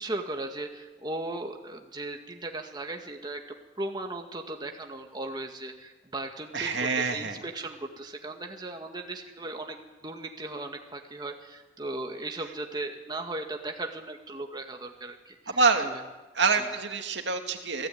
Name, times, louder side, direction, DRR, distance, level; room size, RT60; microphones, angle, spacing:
voice 1, 0.0-3.4 3.8-16.0 16.6-16.7, right 2 dB, 25° right, 3 dB, 2.0 m, -37 dB
voice 2, 6.5-7.4 15.5-15.9 16.3-17.9, right 4 dB, 65° right, 5 dB, 2.6 m, -26 dB
29.5 x 18.5 x 9.4 m, 1.2 s
head